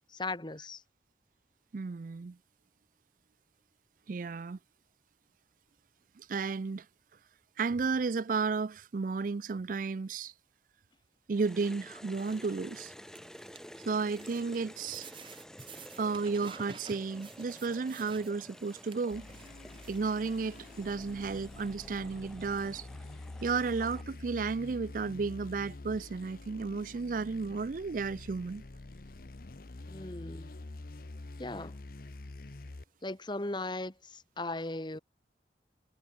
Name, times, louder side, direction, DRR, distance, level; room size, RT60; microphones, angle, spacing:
voice 1, 0.1-0.8 29.9-30.5 31.4-31.7 33.0-35.0, left 2 dB, 25° left, 1.5 m, -38 dB
voice 2, 1.7-2.4 4.1-4.6 6.2-6.9 7.6-10.3 11.3-12.9 13.8-15.1 16.0-19.2 19.9-22.9 23.4-28.6, right 4 dB, 45° right, 0.4 m, -33 dB
sound 1, 11.3-24.0, equal, 5° left, 1.4 m, -51 dB
sound 2, 12.1-22.0, right 4 dB, 30° right, 5.1 m, -54 dB
sound 3, 19.1-32.8, left 2 dB, 55° left, 0.8 m, -47 dB
head